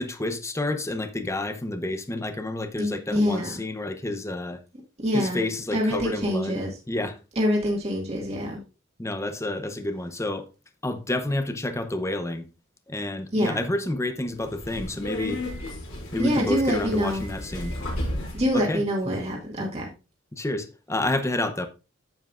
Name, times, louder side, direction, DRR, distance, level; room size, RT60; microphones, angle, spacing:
voice 1, 0.0-4.6 5.1-7.2 9.0-10.5 10.8-12.5 12.9-15.4 16.1-17.7 18.5-19.1 20.3-21.7, left 1 dB, 15° left, 0.7 m, -29 dB
voice 2, 2.8-3.5 5.0-5.4 5.7-6.7 7.4-8.6 13.3-13.6 16.2-17.2 18.3-19.9, equal, 30° right, 1.9 m, -25 dB
Subway metro underground, 14.3-18.6, left 1 dB, 85° left, 4.2 m, -34 dB
9.2 x 8.1 x 2.5 m
head